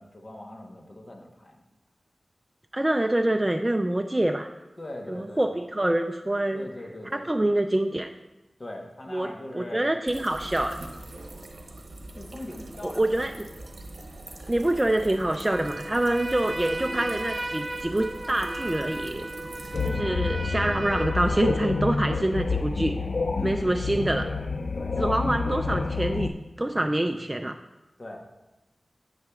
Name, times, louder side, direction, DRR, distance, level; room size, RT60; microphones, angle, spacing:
voice 1, 0.0-1.6 4.8-5.4 6.5-7.3 8.6-9.9 12.1-13.2 13.6-13.7 23.3-23.6 24.7-25.0 28.0-28.2, left 1 dB, 40° left, 1 dB, 1.1 m, -40 dB
voice 2, 2.7-4.5 5.1-6.7 7.1-8.1 9.1-10.8 12.8-13.3 14.5-19.3 19.8-22.9 23.4-24.3 25.0-27.6, right 1 dB, 20° right, 5 dB, 0.4 m, -26 dB
sound 1, 10.1-19.9, right 1 dB, 75° right, 0.9 m, -42 dB
Trumpet, 15.4-21.9, right 2 dB, 40° right, 1.2 m, -36 dB
sound 2, 19.7-26.3, left 4 dB, 70° left, 0.4 m, -28 dB
9.7 x 9.1 x 2.4 m, 1.0 s
wide cardioid pair, 85°, 0 cm